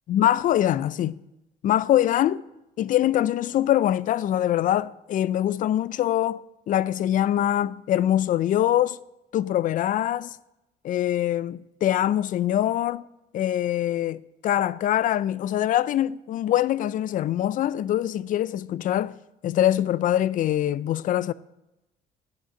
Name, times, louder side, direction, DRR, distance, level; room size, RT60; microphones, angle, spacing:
voice 1, 0.1-1.2 1.6-2.4 2.8-9.0 9.3-10.4 10.8-13.0 13.3-19.2 19.4-21.3, left 12 dB, 50° left, 0.4 m, -23 dB
10.0 x 5.7 x 7.6 m
cardioid pair, 110°, 17 cm